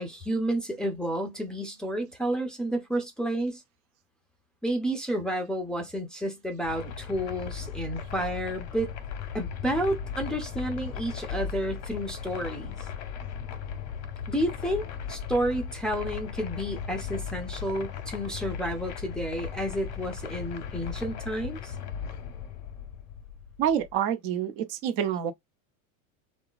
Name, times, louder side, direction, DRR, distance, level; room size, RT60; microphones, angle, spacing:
voice 1, 0.0-3.6 4.6-8.9 9.3-12.7 14.3-21.8, right 1 dB, ahead, 0.5 m, -31 dB
sound 1, 6.6-24.0, left 7 dB, 40° left, 0.7 m, -37 dB
voice 2, 23.6-25.3, right 9 dB, 55° right, 0.9 m, -27 dB
2.8 x 2.3 x 2.3 m
supercardioid pair, 135°, 43 cm